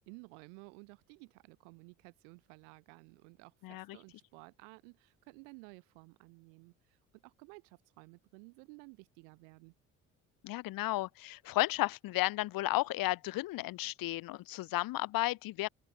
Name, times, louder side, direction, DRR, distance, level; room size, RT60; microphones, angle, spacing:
voice 1, 0.0-9.7, right 40 dB or more, 75° right, 1.6 m, -55 dB
voice 2, 3.6-4.0 10.4-15.7, left 17 dB, 65° left, 1.6 m, -33 dB
open air
hypercardioid pair, 50°, 37 cm